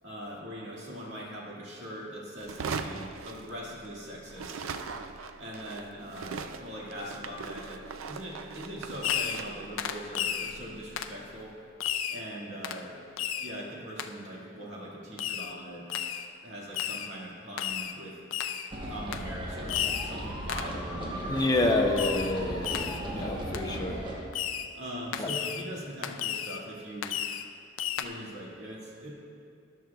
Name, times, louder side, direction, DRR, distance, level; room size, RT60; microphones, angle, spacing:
voice 1, 0.0-4.7 5.4-11.5 12.1-13.0 13.4-15.9 16.4-18.2 18.9-21.5 23.2-24.3 24.7-27.2 28.0-29.1, equal, 60° right, -4 dB, 2.0 m, -41 dB
sound 1, 2.4-4.0 4.3-11.5, right 5 dB, 80° right, 0.5 m, -40 dB
Fireworks, 9.0-9.5 9.8-10.5 11.0-11.2 11.8-12.2 12.6-12.8 13.2-13.5 14.0-14.1 15.2-15.5 15.9-16.3 16.7-17.1 17.6-18.0 18.3-18.7 19.1-19.3 19.7-20.1 20.5-20.8 22.0-22.4 22.6-23.0 23.5-23.7 24.3-24.7 25.1-25.6 26.0-26.6 27.0-27.5 27.8-28.0, left 10 dB, 75° left, 0.4 m, -33 dB
sound 2, 18.7-24.2, right 1 dB, 25° right, 1.1 m, -37 dB
voice 2, 21.3-24.0 25.2-25.3, left 2 dB, 20° left, 1 dB, 0.7 m, -28 dB
13.5 x 10.5 x 2.3 m, 2.4 s
head